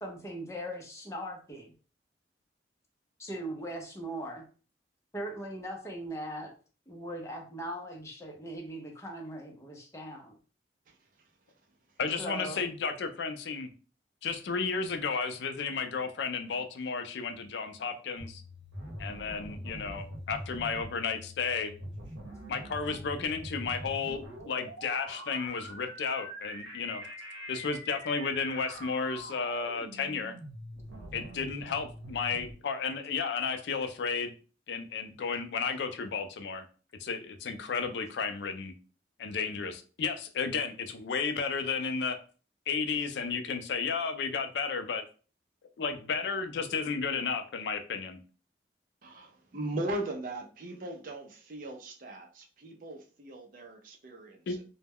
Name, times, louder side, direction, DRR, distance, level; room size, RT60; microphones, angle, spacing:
voice 1, 0.0-1.7 3.2-4.4 5.1-6.5 6.9-10.4 12.2-12.6, right 1 dB, 15° left, 1 dB, 0.5 m, -39 dB
voice 2, 12.0-13.7 14.2-18.4 19.0-21.7 22.5-27.0 27.5-30.3 31.1-34.3 34.7-36.6 37.0-38.7 39.2-42.2 42.7-45.0 45.8-48.2 54.5-54.6, left 5 dB, 70° left, 7 dB, 0.4 m, -33 dB
sound 1, 18.2-32.5, equal, 85° right, 0.7 m, -44 dB
voice 3, 49.0-51.2 51.5-54.6, right 1 dB, 45° right, 2 dB, 0.5 m, -38 dB
2.2 x 2.1 x 3.4 m, 0.38 s
head